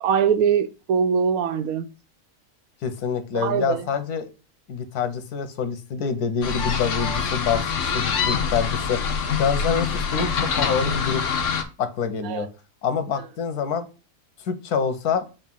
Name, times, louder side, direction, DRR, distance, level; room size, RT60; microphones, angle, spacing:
voice 1, 0.0-1.8 3.3-3.8 12.2-12.5, right 7 dB, 75° right, 1.0 m, -22 dB
voice 2, 2.8-4.3 4.7-7.6 7.9-9.1 9.4-11.2 11.8-12.5 12.8-13.9 14.4-15.3, left 6 dB, 85° left, 1.4 m, -26 dB
sound 1, 6.4-11.6, left 6 dB, 60° left, 1.1 m, -25 dB
6.9 x 2.6 x 5.4 m
omnidirectional pair, 1.6 m